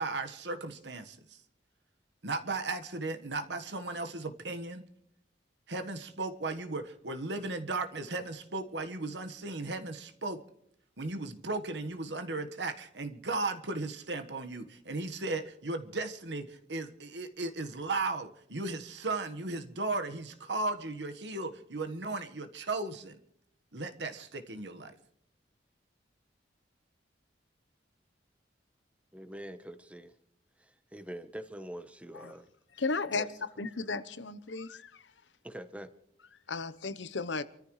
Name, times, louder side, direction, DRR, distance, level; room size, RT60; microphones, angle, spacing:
voice 1, 0.0-1.4 2.2-4.8 5.7-10.4 11.0-23.2 23.7-24.9, right 3 dB, 70° right, 1.5 m, -36 dB
voice 2, 29.1-30.2 30.6-32.5 33.0-33.3 35.4-35.9, right 1 dB, 5° right, 1.1 m, -44 dB
voice 3, 32.8-33.2 33.6-34.9 36.5-37.4, left 4 dB, 85° left, 1.0 m, -34 dB
28.0 x 14.0 x 3.3 m
head